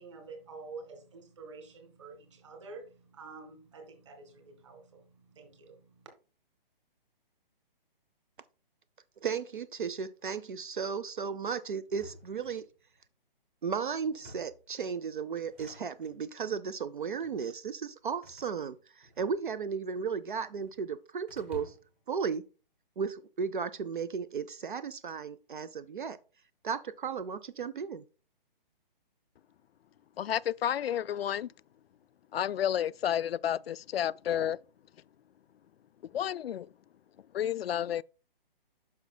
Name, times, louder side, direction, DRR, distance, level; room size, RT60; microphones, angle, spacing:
voice 1, 0.0-6.1, right 4 dB, 30° right, 1.8 m, -48 dB
voice 2, 9.2-12.6 13.6-21.7 22.1-22.4 23.0-26.2 26.6-28.0, right 6 dB, 60° right, 0.6 m, -35 dB
sound 1, 11.9-13.0 14.0-14.7 15.4-16.2 17.0-17.4 18.2-19.7 20.0-20.8 21.3-22.0, equal, 15° right, 0.9 m, -53 dB
voice 3, 30.2-31.5 32.3-34.6 36.1-36.7 37.3-38.0, left 10 dB, 90° left, 0.4 m, -31 dB
9.5 x 6.2 x 2.2 m
hypercardioid pair, 180°, 29 cm